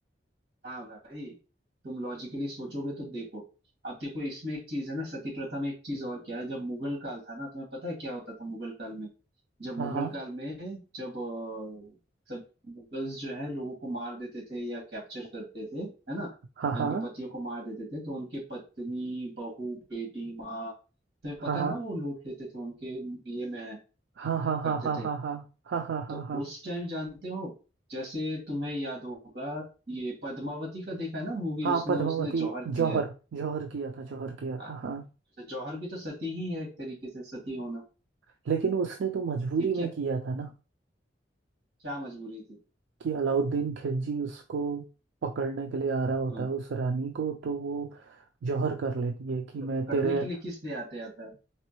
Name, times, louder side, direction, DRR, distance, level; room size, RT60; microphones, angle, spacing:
voice 1, 0.6-1.4 1.8-3.4 3.8-9.1 9.6-12.0 12.3-16.3 16.7-20.8 21.2-23.8 24.6-25.1 26.1-27.5 27.9-33.0 34.6-34.8 35.4-37.8 39.8-39.9 41.8-42.6 46.3-46.5 49.9-51.3, equal, 60° right, -2 dB, 2.2 m, -36 dB
voice 2, 9.8-10.1 16.6-17.1 21.4-21.8 24.2-26.4 31.6-35.1 38.5-40.5 43.0-44.9 45.2-50.3, right 5 dB, 85° right, 4 dB, 0.4 m, -30 dB
4.1 x 3.0 x 3.0 m, 0.33 s
head